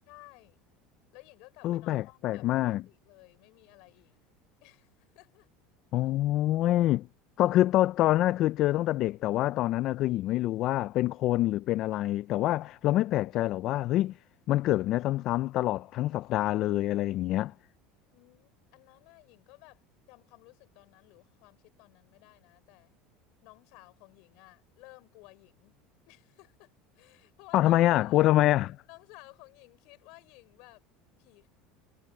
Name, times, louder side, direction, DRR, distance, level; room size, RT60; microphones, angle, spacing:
voice 1, 0.1-0.6 1.1-4.2 4.6-5.5 18.1-22.9 23.4-25.7 26.1-28.3 28.9-30.8 31.2-31.5, left 26 dB, 65° left, 5.6 m, -55 dB
voice 2, 1.6-2.8 5.9-7.1 7.4-14.1 14.5-17.5 27.5-28.8, left 15 dB, 45° left, 0.4 m, -26 dB
cardioid pair, 145°, 0 cm